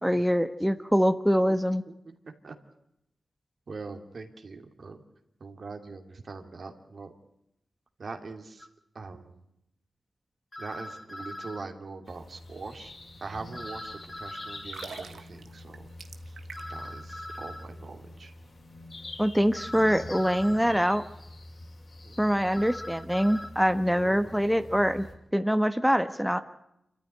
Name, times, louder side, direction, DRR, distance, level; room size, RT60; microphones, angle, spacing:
voice 1, 0.0-1.8 19.2-21.0 22.2-25.1 25.3-26.4, equal, ahead, 9 dB, 1.3 m, -24 dB
voice 2, 3.7-5.0 5.4-7.1 8.0-8.7 8.9-9.4 10.6-12.9 13.2-15.9 16.3-16.4 16.7-18.3 22.0-22.5 23.7-24.7, right 4 dB, 65° right, 4 dB, 2.7 m, -43 dB
sound 1, 8.6-8.7 10.5-11.7 13.5-14.7 16.5-17.7 19.5-20.7 22.5-23.5, left 1 dB, 25° left, 2.5 m, -41 dB
sound 2, 12.0-25.1, left 2 dB, 60° left, 5.4 m, -46 dB
sound 3, 14.6-16.9 17.2-17.4, right 5 dB, 85° right, 1.5 m, -44 dB
26.5 x 14.0 x 9.9 m, 0.84 s
cardioid pair, 50°, 0 cm